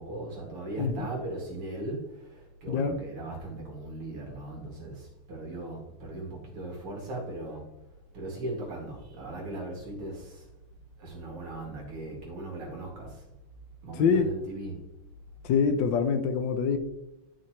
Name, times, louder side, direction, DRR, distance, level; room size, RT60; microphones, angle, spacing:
voice 1, 0.0-7.7 8.1-10.5 11.0-13.2 13.8-14.8, right 2 dB, 85° right, -2 dB, 3.3 m, -38 dB
voice 2, 0.8-1.1 2.7-3.0 13.9-14.3 15.4-16.8, left 6 dB, 70° left, 8 dB, 1.2 m, -25 dB
11.5 x 6.0 x 3.2 m, 0.94 s
omnidirectional pair, 2.4 m